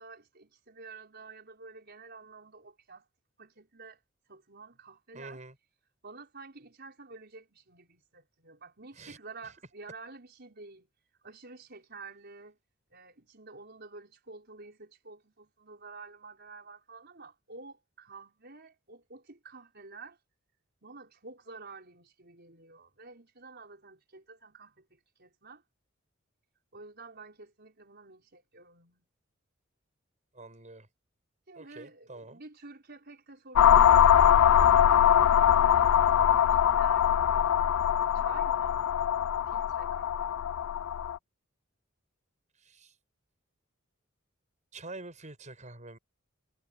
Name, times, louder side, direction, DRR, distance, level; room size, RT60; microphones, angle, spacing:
voice 1, 0.0-3.1 3.4-5.4 6.0-10.9 11.2-12.6 12.9-20.2 20.8-25.6 26.7-29.1 31.5-37.6 38.1-38.9 39.5-40.5, right 3 dB, 55° right, 5.2 m, -50 dB
voice 2, 5.1-5.5 9.0-9.2 30.3-30.9 31.6-32.4 42.6-42.9 44.7-46.0, right 2 dB, 35° right, 6.4 m, -46 dB
sound 1, 33.6-41.2, left 9 dB, 85° left, 0.3 m, -22 dB
head